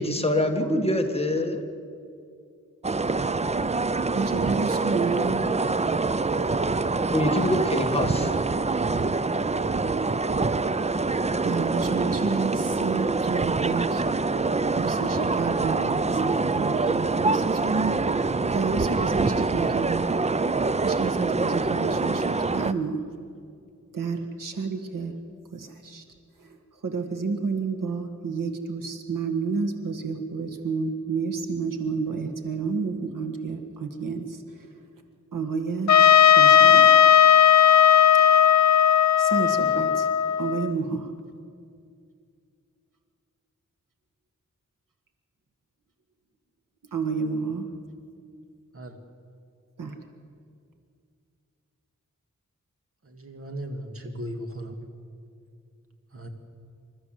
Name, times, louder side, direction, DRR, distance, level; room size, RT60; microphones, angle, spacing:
voice 1, 0.0-1.6 7.1-8.3, left 1 dB, 20° left, 4 dB, 1.6 m, -25 dB
voice 2, 0.6-1.0 4.1-5.5 11.4-14.0 14.7-20.2 20.8-23.0 23.9-25.2 25.5-26.0 26.4-26.6 26.8-34.7 35.3-35.9 36.3-36.9 38.2-38.4 39.2-41.1 46.9-47.7 49.8-50.0, right 4 dB, 90° right, 5 dB, 1.9 m, -30 dB
sound 1, 2.8-22.7, right 3 dB, 20° right, 0.5 m, -25 dB
Trumpet, 35.9-40.7, left 9 dB, 60° left, 0.6 m, -16 dB
voice 3, 53.0-54.8 56.1-56.3, equal, 45° right, 4 dB, 2.2 m, -36 dB
27.5 x 13.0 x 7.7 m, 2.4 s
wide cardioid pair, 125°, 32 cm